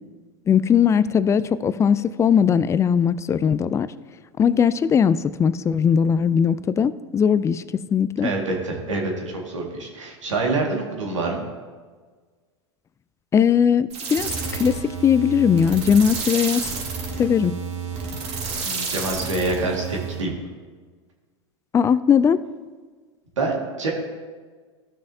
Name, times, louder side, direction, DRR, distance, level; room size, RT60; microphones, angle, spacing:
voice 1, 0.5-3.9 4.4-7.6 7.9-8.3 13.3-16.6 17.2-17.5 21.7-22.4, left 7 dB, 20° left, 16 dB, 0.3 m, -19 dB
voice 2, 8.2-11.4 18.6-20.3 23.4-23.9, right 3 dB, 90° right, 0 dB, 2.0 m, -26 dB
sound 1, 13.9-20.2, right 5 dB, 45° right, 2.1 m, -30 dB
14.0 x 6.3 x 2.8 m, 1.4 s
hypercardioid pair, 95°, 15 cm